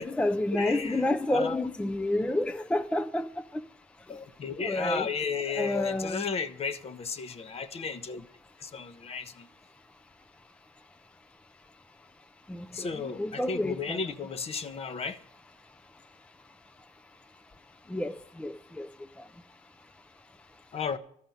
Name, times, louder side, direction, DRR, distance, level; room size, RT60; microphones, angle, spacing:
voice 1, 0.0-3.3 4.6-5.1 5.5-6.3 12.5-14.0 17.9-18.9, left 1 dB, 5° left, 0.4 m, -29 dB
voice 2, 0.5-1.6 4.1-8.3 8.6-9.5 12.7-15.2 20.7-21.0, left 5 dB, 35° left, 0.8 m, -34 dB
13.0 x 5.7 x 9.1 m
cardioid pair, 110°, 17 cm